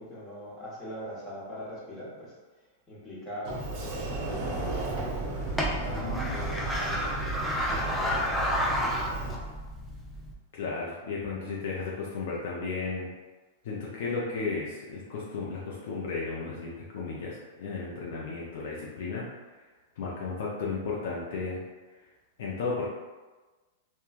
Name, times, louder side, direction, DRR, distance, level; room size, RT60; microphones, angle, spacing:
voice 1, 0.0-7.1 7.6-9.0, equal, 20° left, -7 dB, 1.1 m, -42 dB
Sliding door, 3.5-9.3, right 2 dB, 45° right, 0.6 m, -34 dB
sound 1, 4.1-10.3, equal, 5° left, 0.4 m, -32 dB
voice 2, 5.9-6.4 10.5-13.1 13.6-19.2 20.0-21.6 22.4-22.9, left 4 dB, 65° left, -5 dB, 0.5 m, -34 dB
3.1 x 2.1 x 2.4 m, 1.2 s
hypercardioid pair, 105°, 0 cm